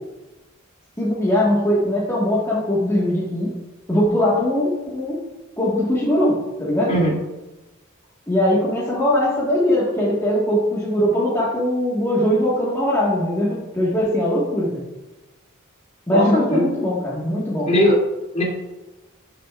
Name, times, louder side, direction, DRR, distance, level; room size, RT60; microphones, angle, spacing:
voice 1, 1.0-3.5 3.9-5.2 5.6-6.9 8.3-14.8 16.1-17.7, left 1 dB, 15° left, -8 dB, 1.6 m, -20 dB
voice 2, 16.1-16.7 17.6-17.9 18.3-18.4, left 1 dB, 35° left, -3 dB, 2.9 m, -18 dB
13.0 x 6.6 x 2.5 m, 1.0 s
head